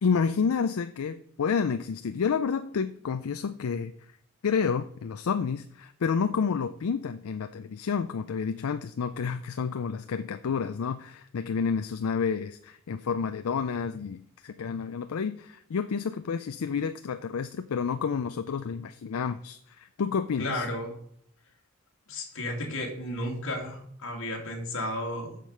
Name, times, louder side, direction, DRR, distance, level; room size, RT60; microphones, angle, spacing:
voice 1, 0.0-3.9 4.4-20.7, left 6 dB, 80° left, 10 dB, 0.4 m, -29 dB
voice 2, 20.4-20.9 22.1-25.4, left 1 dB, 65° left, 0 dB, 2.5 m, -33 dB
7.6 x 6.6 x 5.4 m, 0.64 s
head